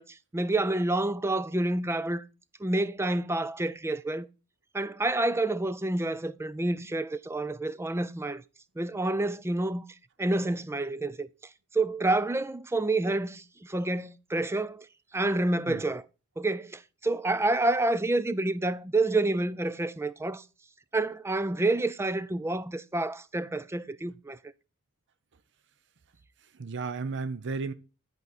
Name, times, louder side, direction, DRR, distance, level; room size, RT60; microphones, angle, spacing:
voice 1, 0.0-2.2 2.6-4.3 4.7-8.4 8.8-9.9 10.2-11.3 11.7-14.9 15.1-16.0 16.4-20.4 20.9-24.4, right 2 dB, 10° right, 0.4 m, -28 dB
voice 2, 26.4-27.7, right 4 dB, 55° right, 0.6 m, -34 dB
11.0 x 5.1 x 4.2 m
head